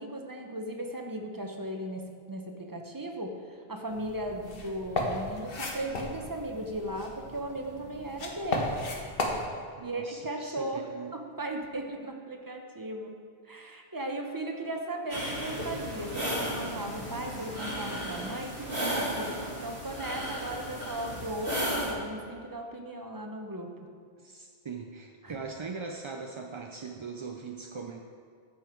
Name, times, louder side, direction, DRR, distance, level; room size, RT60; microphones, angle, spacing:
voice 1, 0.0-8.7 9.8-10.9 11.1-13.1 13.4-23.7 25.2-25.4, right 1 dB, 20° right, 3 dB, 0.9 m, -37 dB
sound 1, 3.9-9.5, left 2 dB, 65° left, 1.3 m, -35 dB
voice 2, 9.8-11.2 24.2-28.0, right 5 dB, 45° right, 2 dB, 0.4 m, -40 dB
sound 2, 15.1-21.9, equal, 90° right, 2.7 m, -34 dB
14.5 x 5.7 x 4.5 m, 2.2 s
omnidirectional pair, 1.1 m